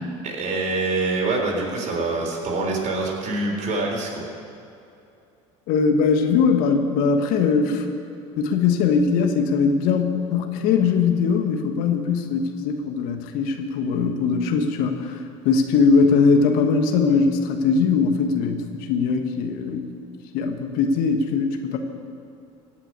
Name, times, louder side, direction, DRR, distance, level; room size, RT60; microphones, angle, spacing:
voice 1, 0.2-4.2, right 3 dB, 50° right, 0 dB, 3.7 m, -25 dB
voice 2, 5.7-7.8 8.4-19.9 20.3-21.8, left 5 dB, 70° left, 6 dB, 1.4 m, -21 dB
16.5 x 6.0 x 9.5 m, 2.6 s
hypercardioid pair, 75°, 16 cm